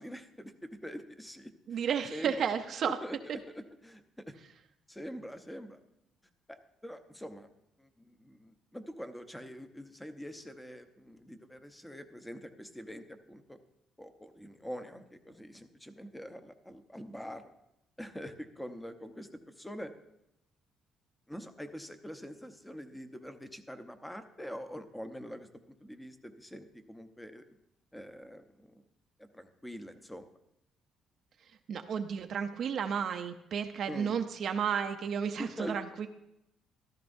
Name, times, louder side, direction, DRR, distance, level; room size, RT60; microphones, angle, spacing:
voice 1, 0.0-1.8 2.1-2.5 2.8-3.2 3.5-4.3 4.9-5.8 6.5-7.5 7.8-13.6 14.0-17.5 18.0-19.9 21.3-27.4 27.9-28.8 29.2-30.3 33.9-34.2 35.4-35.9, equal, 5° left, 8 dB, 0.8 m, -45 dB
voice 2, 1.7-3.0 31.7-36.1, right 7 dB, 55° right, 6 dB, 0.6 m, -32 dB
14.5 x 13.0 x 2.6 m, 0.84 s
cardioid pair, 115°, 0 cm